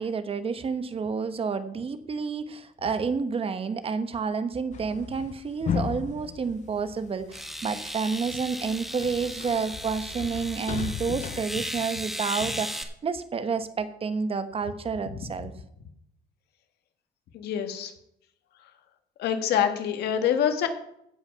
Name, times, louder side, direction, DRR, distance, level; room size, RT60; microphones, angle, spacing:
voice 1, 0.0-15.5, right 5 dB, 35° right, 11 dB, 1.0 m, -30 dB
sound 1, 4.7-7.7 8.1-11.5, left 7 dB, 45° left, 0.8 m, -35 dB
sound 2, 6.4-6.5 7.3-12.8, equal, ahead, 1.4 m, -36 dB
voice 2, 17.3-17.9 19.2-20.7, left 9 dB, 75° left, 7 dB, 1.6 m, -25 dB
16.0 x 5.6 x 5.7 m, 0.75 s
cardioid pair, 110°, 17 cm